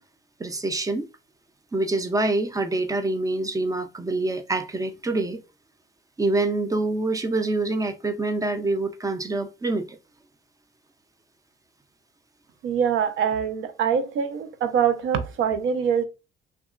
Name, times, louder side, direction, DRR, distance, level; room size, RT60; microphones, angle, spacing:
voice 1, 0.4-1.1 1.7-5.4 6.2-10.0, right 2 dB, 15° right, 0.4 m, -26 dB
voice 2, 12.6-16.0, right 7 dB, 80° right, 0.5 m, -24 dB
2.8 x 2.3 x 2.4 m
cardioid pair, 90°, 20 cm